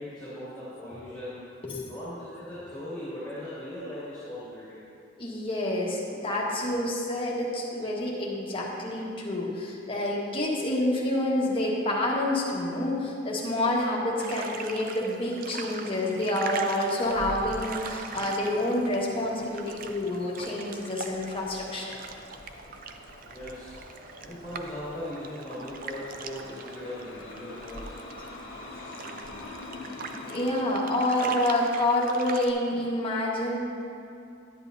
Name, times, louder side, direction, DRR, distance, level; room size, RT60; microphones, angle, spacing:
voice 1, 0.0-1.4 1.8-4.8 23.2-23.8 24.2-28.0, left 1 dB, 5° left, -13 dB, 2.2 m, -39 dB
voice 2, 5.2-21.9 30.3-33.6, left 1 dB, 30° left, -4 dB, 1.4 m, -28 dB
sound 1, 14.2-32.5, right 5 dB, 45° right, 0.4 m, -42 dB
sound 2, 17.0-30.6, left 2 dB, 85° left, 1.2 m, -45 dB
10.5 x 9.9 x 2.7 m, 2.4 s
head